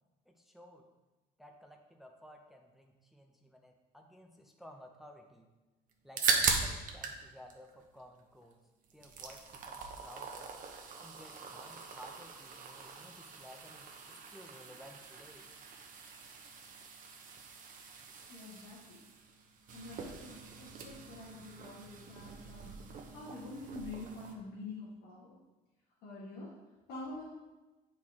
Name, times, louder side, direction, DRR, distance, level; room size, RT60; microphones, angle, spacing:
voice 1, 0.3-0.8 1.4-5.5 6.0-8.6 8.9-10.5 11.0-15.5, equal, ahead, 2 dB, 0.6 m, -55 dB
sound 1, 5.9-7.2 7.5-8.5 8.8-24.3, right 5 dB, 50° right, 0.9 m, -40 dB
voice 2, 18.3-19.0 19.7-22.7 23.1-25.4 26.0-26.5 26.9-27.2, left 2 dB, 90° left, -8 dB, 1.6 m, -46 dB
8.2 x 4.4 x 3.6 m, 1.1 s
cardioid pair, 110°, 17 cm